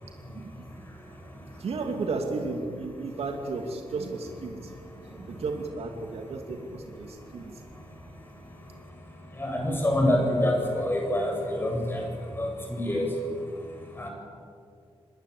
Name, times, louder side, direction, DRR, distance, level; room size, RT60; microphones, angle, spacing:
voice 1, 0.3-1.2 1.6-4.8 5.1-7.6, right 3 dB, 80° right, 3 dB, 2.6 m, -34 dB
voice 2, 9.4-12.0 12.4-13.1 14.0-14.1, left 1 dB, 20° left, 1 dB, 7.5 m, -26 dB
26.5 x 20.5 x 8.6 m, 2.4 s
wide cardioid pair, 130°, 10 cm